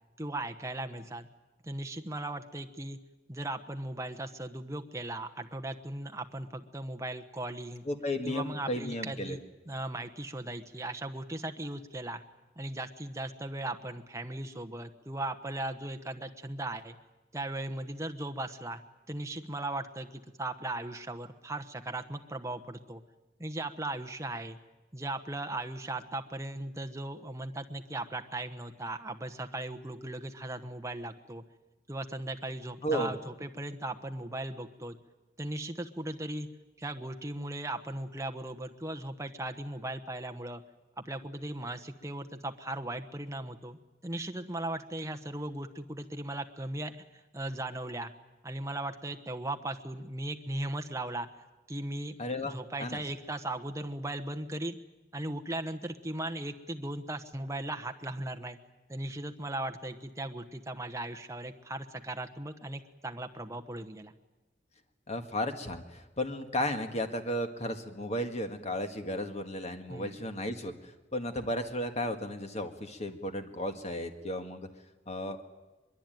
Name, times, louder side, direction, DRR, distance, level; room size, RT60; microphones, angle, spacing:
voice 1, 0.2-1.3 1.6-3.0 3.3-7.8 8.2-9.4 9.7-12.2 12.6-16.9 17.3-18.8 19.1-23.0 23.4-24.6 24.9-31.4 31.9-35.0 35.4-36.5 36.8-40.6 41.0-46.9 47.3-48.1 48.4-51.3 51.7-52.2 52.4-54.8 55.1-58.6 58.9-64.1 69.9-70.2, right 1 dB, 15° right, 6 dB, 1.1 m, -37 dB
voice 2, 7.9-9.4 32.8-33.1 52.2-52.5 52.8-53.0 65.1-74.7 75.1-75.4, left 1 dB, 35° left, 6 dB, 1.8 m, -34 dB
22.5 x 22.5 x 9.2 m, 1.1 s
head